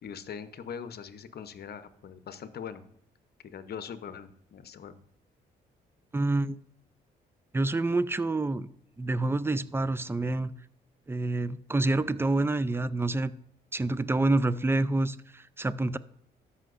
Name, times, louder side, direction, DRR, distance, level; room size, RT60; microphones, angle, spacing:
voice 1, 0.0-2.8 3.4-5.0, left 7 dB, 60° left, 11 dB, 0.8 m, -41 dB
voice 2, 6.1-6.6 7.5-8.7 9.0-10.5 11.1-13.3 13.7-16.0, right 2 dB, 10° right, 16 dB, 0.5 m, -27 dB
13.5 x 5.7 x 2.5 m, 0.67 s
supercardioid pair, 60°, 19 cm